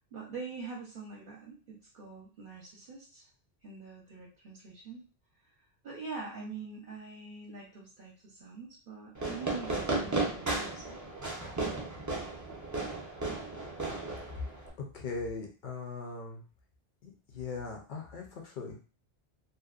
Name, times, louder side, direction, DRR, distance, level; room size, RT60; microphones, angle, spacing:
voice 1, 0.1-3.3 3.6-5.0 5.5-5.6 5.8-10.8, right 4 dB, 60° right, -3 dB, 0.8 m, -44 dB
Fireworks, 9.1-14.7, right 3 dB, 25° right, 0.4 m, -34 dB
voice 2, 14.9-16.4 17.0-18.8, left 4 dB, 55° left, 1 dB, 0.7 m, -40 dB
2.7 x 2.1 x 2.4 m, 0.36 s
omnidirectional pair, 1.0 m